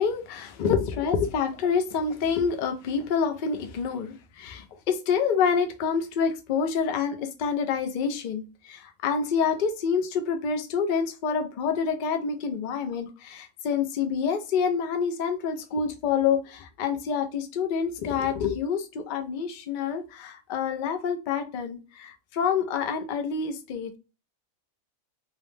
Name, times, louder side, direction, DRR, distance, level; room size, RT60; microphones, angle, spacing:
voice 1, 0.0-24.0, left 6 dB, 80° left, 6 dB, 0.4 m, -27 dB
2.8 x 2.0 x 3.1 m, 0.31 s
omnidirectional pair, 1.4 m